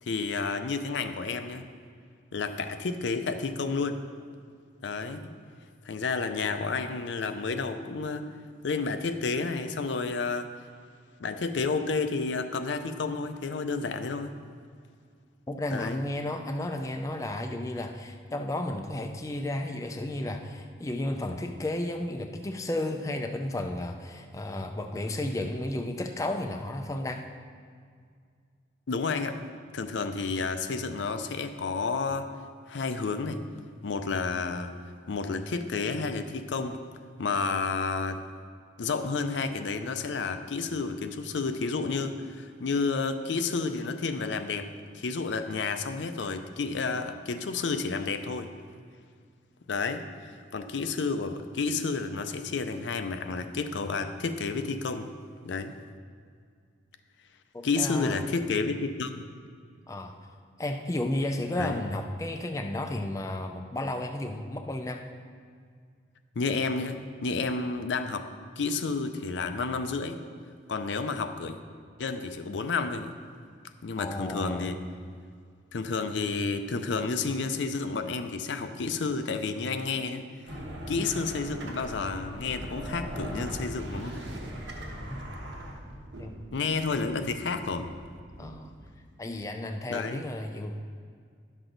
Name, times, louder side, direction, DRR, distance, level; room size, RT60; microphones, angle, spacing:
voice 1, 0.0-1.6 2.3-4.0 4.8-5.3 5.9-8.3 8.6-10.5 11.2-14.3 15.7-16.0 28.9-29.4 29.7-32.3 32.7-33.4 33.8-34.7 35.1-36.8 37.2-38.2 38.8-44.7 44.9-48.5 49.7-55.1 55.4-55.7 57.6-59.3 61.6-61.8 66.4-68.3 68.6-70.2 70.7-71.6 72.0-73.1 73.8-74.8 75.7-80.2 80.9-84.2 86.5-87.9 89.9-90.2, left 4 dB, 75° left, 8 dB, 0.5 m, -31 dB
voice 2, 15.5-27.2 57.5-58.4 59.9-60.2 60.6-65.0 74.0-74.8 85.1-85.2 86.2-86.4 88.4-88.7 89.2-90.8, left 1 dB, 15° left, 4 dB, 0.3 m, -33 dB
sound 1, 80.5-88.9, equal, 75° right, 1.3 m, -40 dB
11.0 x 6.1 x 3.9 m, 2.1 s
head